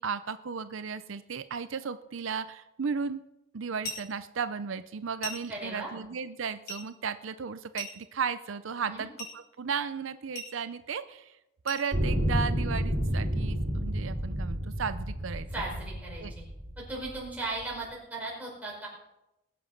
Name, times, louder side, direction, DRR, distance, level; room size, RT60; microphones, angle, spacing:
voice 1, 0.0-3.2 3.5-11.4 11.6-15.5 16.2-16.3, right 6 dB, 80° right, 12 dB, 0.6 m, -35 dB
sound 1, 3.8-4.2 5.2-5.6 6.7-6.9 7.8-8.2 9.2-9.4 10.3-10.6 11.7-11.9, equal, 50° left, 5.2 m, -39 dB
voice 2, 5.5-5.9 8.8-9.0 15.5-16.4 16.8-18.9, right 2 dB, 10° right, -4 dB, 4.9 m, -37 dB
sound 2, 11.9-17.2 17.9-18.0, equal, 50° right, 5.0 m, -30 dB
20.0 x 7.9 x 5.9 m, 0.93 s
head